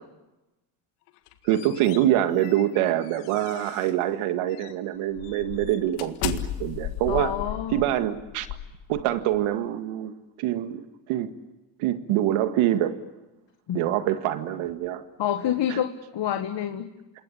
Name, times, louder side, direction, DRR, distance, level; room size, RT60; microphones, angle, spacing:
sound 1, 1.1-4.0 4.5-4.7 5.2-9.4, left 13 dB, 80° left, 1.9 m, -36 dB
voice 1, 1.4-7.3 7.7-8.5 8.9-11.3 11.8-13.0 13.7-15.1 15.7-15.8, right 12 dB, 80° right, 9 dB, 2.0 m, -25 dB
voice 2, 7.1-7.8 13.7-13.8 15.2-16.9, left 10 dB, 55° left, 7 dB, 1.8 m, -28 dB
27.5 x 21.0 x 8.9 m, 1.0 s
hypercardioid pair, 60°, 50 cm